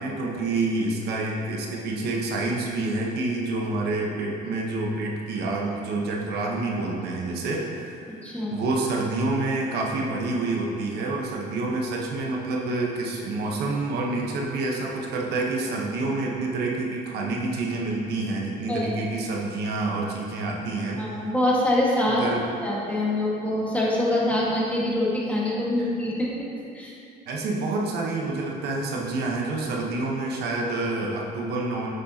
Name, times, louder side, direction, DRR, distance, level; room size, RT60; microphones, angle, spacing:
voice 1, 0.0-8.0 8.5-21.0 22.1-22.5 25.8-25.9 27.3-31.9, right 2 dB, 75° right, -1 dB, 1.1 m, -28 dB
voice 2, 8.2-8.6 18.7-18.9 21.0-22.2 22.6-26.5 26.7-26.9, left 1 dB, 10° left, -6 dB, 1.7 m, -25 dB
9.0 x 6.5 x 2.9 m, 2.5 s
cardioid pair, 110°, 17 cm